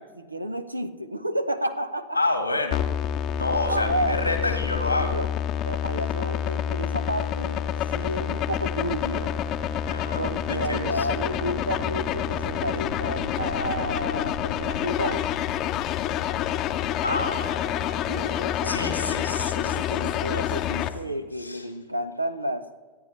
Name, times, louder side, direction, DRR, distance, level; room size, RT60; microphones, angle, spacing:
voice 1, 0.0-2.2 3.7-4.2 5.0-5.3 5.6-7.6 7.9-9.3 10.2-15.4 18.1-19.3 19.5-22.6, right 1 dB, 85° right, 12 dB, 0.8 m, -31 dB
voice 2, 2.1-2.8 3.3-5.2 9.9-11.1 17.0-20.1 20.3-20.8 21.0-21.7, left 2 dB, 85° left, 6 dB, 1.7 m, -30 dB
sound 1, 2.7-20.9, left 10 dB, 35° left, 0.8 m, -28 dB
27.5 x 9.4 x 3.2 m, 1.3 s
figure-of-eight pair, 90°, 0 cm